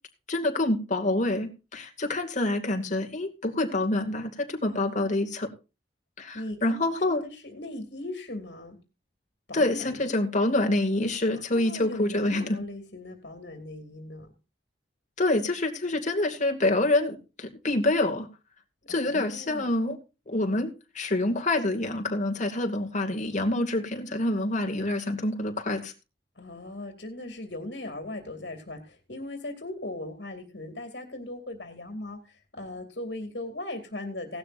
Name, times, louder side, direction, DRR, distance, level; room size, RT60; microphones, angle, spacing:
voice 1, 0.3-5.5 6.2-7.2 9.5-12.6 15.2-18.3 18.9-20.0 20.3-25.9, left 2 dB, 45° left, 5 dB, 2.4 m, -27 dB
voice 2, 4.7-5.2 6.3-8.8 9.5-10.1 11.3-14.3 18.9-19.7 26.4-34.4, left 1 dB, 70° left, 4 dB, 2.7 m, -39 dB
17.5 x 12.0 x 2.6 m, 0.30 s
head